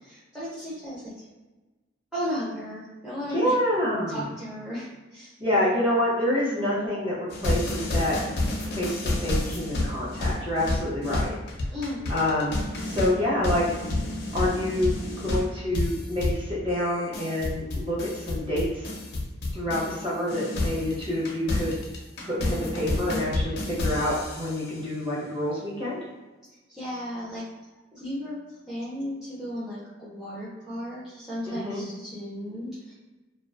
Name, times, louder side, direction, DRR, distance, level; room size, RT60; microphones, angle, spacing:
voice 1, 0.0-1.2 2.1-3.5 4.1-5.3 11.7-12.5 26.7-27.4 27.9-28.4 28.6-32.9, equal, ahead, -11 dB, 0.4 m, -35 dB
voice 2, 3.3-4.3 5.4-8.2 8.7-11.3 12.1-13.6 14.3-15.0 15.2-18.9 19.5-21.8 22.2-26.0 31.4-31.8, left 1 dB, 25° right, -7 dB, 0.8 m, -27 dB
sound 1, 7.3-20.0 20.3-24.7, left 2 dB, 55° left, 0.5 m, -30 dB
2.4 x 2.3 x 2.4 m, 1.2 s
head